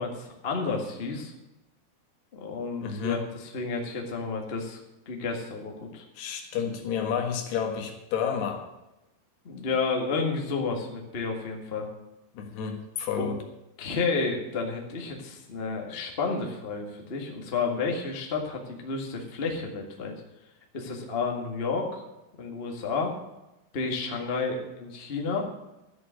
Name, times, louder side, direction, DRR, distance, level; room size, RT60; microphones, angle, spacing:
voice 1, 0.0-1.3 2.3-4.8 5.0-6.0 9.4-11.9 13.2-13.3 13.8-20.1 20.7-22.0 22.4-23.1 23.7-25.5, left 4 dB, 50° left, 1 dB, 0.7 m, -31 dB
voice 2, 2.8-3.2 6.2-8.7 12.3-13.4, left 7 dB, 85° left, 3 dB, 3.7 m, -30 dB
12.5 x 6.9 x 8.8 m, 0.98 s
omnidirectional pair, 4.6 m